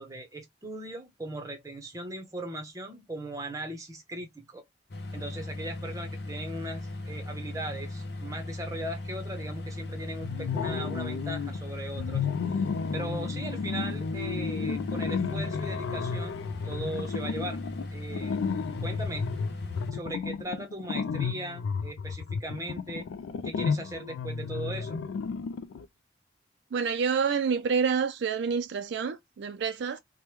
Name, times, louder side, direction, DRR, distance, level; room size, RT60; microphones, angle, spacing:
voice 1, 0.0-4.6 5.1-12.3 12.9-17.6 17.9-18.4 18.8-19.3 19.9-23.1 23.4-25.0, right 1 dB, 15° right, 0.7 m, -38 dB
sound 1, 4.9-19.9, left 2 dB, 55° left, 0.7 m, -38 dB
sound 2, 10.2-11.6 11.9-25.8, left 5 dB, 85° left, 0.3 m, -32 dB
voice 2, 26.7-30.0, right 6 dB, 65° right, 0.3 m, -28 dB
3.0 x 2.1 x 3.2 m
head